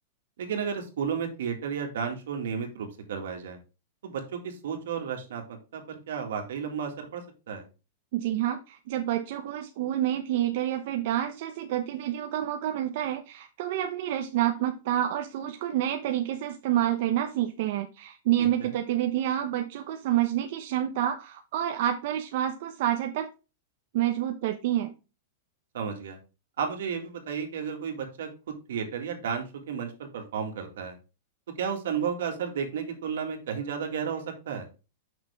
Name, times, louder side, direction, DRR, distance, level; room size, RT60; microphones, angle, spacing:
voice 1, 0.4-3.6 4.0-7.7 18.4-18.7 25.7-26.2 26.6-30.9 31.6-34.7, right 7 dB, 80° right, 4 dB, 2.0 m, -33 dB
voice 2, 8.1-23.3 23.9-24.9, right 12 dB, 50° right, 5 dB, 0.7 m, -28 dB
6.6 x 5.9 x 3.5 m, 0.31 s
supercardioid pair, 165°, 0 cm